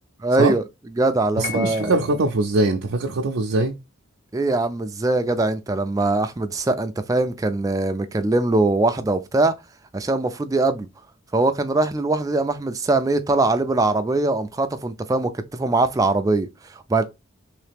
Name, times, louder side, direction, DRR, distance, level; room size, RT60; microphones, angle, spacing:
voice 1, 0.2-0.6 1.0-1.9 4.3-9.5 9.9-10.9 11.3-17.0, right 2 dB, 15° right, 0.3 m, -22 dB
Piano, 1.4-2.3, left 9 dB, 40° left, 0.6 m, -35 dB
voice 2, 1.4-3.8, right 2 dB, 75° right, 0.5 m, -22 dB
3.2 x 2.8 x 3.4 m
head